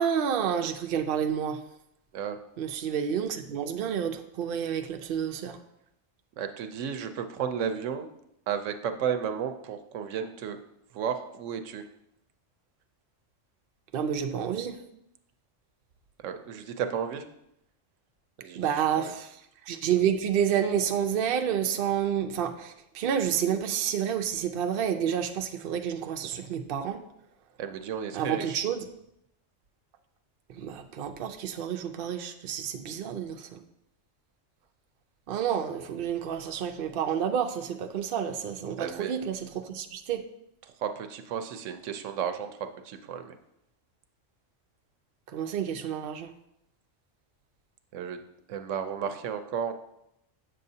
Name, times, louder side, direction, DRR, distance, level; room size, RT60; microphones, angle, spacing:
voice 1, 0.0-1.6 2.6-5.6 13.9-14.8 18.6-19.4 19.7-27.0 28.1-28.9 30.5-33.6 35.3-40.2 45.3-46.3, right 8 dB, 55° right, 6 dB, 0.6 m, -29 dB
voice 2, 6.4-8.1 8.5-10.6 10.9-11.8 16.2-17.2 18.4-19.1 27.6-28.6 38.8-39.1 40.8-42.5 42.8-43.4 47.9-48.2 48.5-49.7, right 8 dB, 80° right, 8 dB, 0.9 m, -33 dB
8.0 x 6.6 x 2.7 m, 0.80 s
omnidirectional pair, 1.3 m